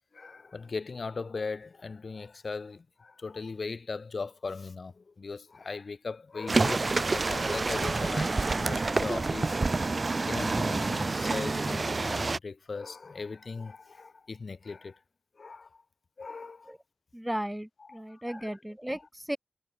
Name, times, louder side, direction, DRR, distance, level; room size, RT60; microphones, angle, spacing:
voice 1, 0.1-9.6 10.2-15.0 15.4-15.8 16.2-16.7 17.8-18.5, left 4 dB, 75° left, 7.0 m, -39 dB
sound 1, 6.5-12.4, right 3 dB, 55° right, 1.0 m, -28 dB
voice 2, 17.1-19.4, equal, 10° right, 6.8 m, -35 dB
wide cardioid pair, 55°, 0 cm